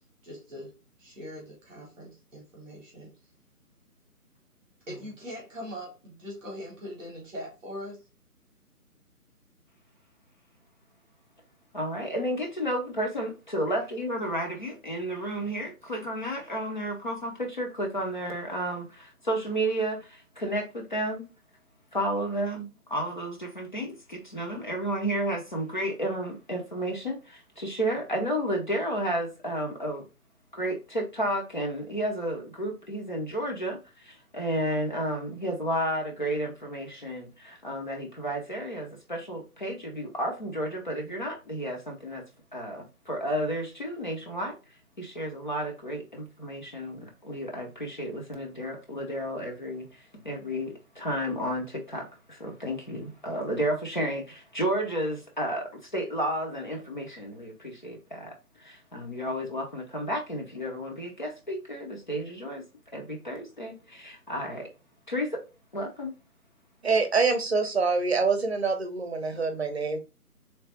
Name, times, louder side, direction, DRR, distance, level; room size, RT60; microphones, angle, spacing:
voice 1, 0.2-0.7 1.0-3.1 4.9-8.0, equal, ahead, 0.9 m, -41 dB
voice 2, 11.7-21.2 21.9-30.0 30.5-42.2 42.5-44.5 45.0-58.3 58.6-62.6 62.9-64.7 65.1-65.4 65.7-66.1, right 1 dB, 30° left, 0.8 m, -32 dB
voice 3, 66.8-70.0, right 4 dB, 45° right, 0.8 m, -25 dB
3.3 x 3.2 x 4.3 m
figure-of-eight pair, 150°, 46 cm